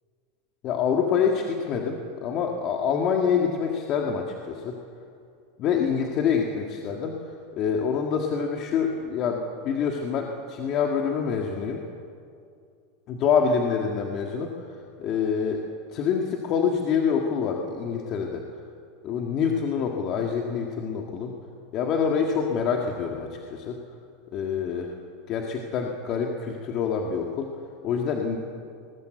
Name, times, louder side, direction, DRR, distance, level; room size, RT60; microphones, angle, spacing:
voice 1, 0.6-4.8 5.6-11.8 13.1-15.6 15.9-18.4 19.0-21.4 21.7-23.8 24.3-25.0 25.3-27.5 27.8-28.4, left 6 dB, 40° left, 2 dB, 1.8 m, -26 dB
20.5 x 17.0 x 7.9 m, 2.4 s
supercardioid pair, 140°, 0 cm